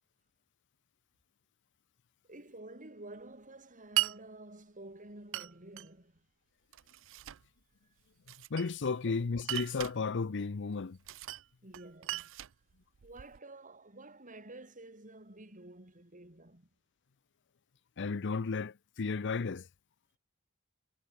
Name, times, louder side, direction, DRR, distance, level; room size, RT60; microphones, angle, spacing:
voice 1, 2.3-6.3 9.0-9.3 11.6-12.3 13.0-16.7, right 2 dB, 40° right, 6.4 m, -51 dB
Glass, 4.0-4.2 5.3-5.9 6.7-7.5 8.3-9.0 9.4-10.0 11.0-11.5 11.7-13.4, right 16 dB, 60° right, 0.5 m, -37 dB
voice 2, 8.5-11.0 18.0-19.7, left 4 dB, 55° left, 0.6 m, -33 dB
head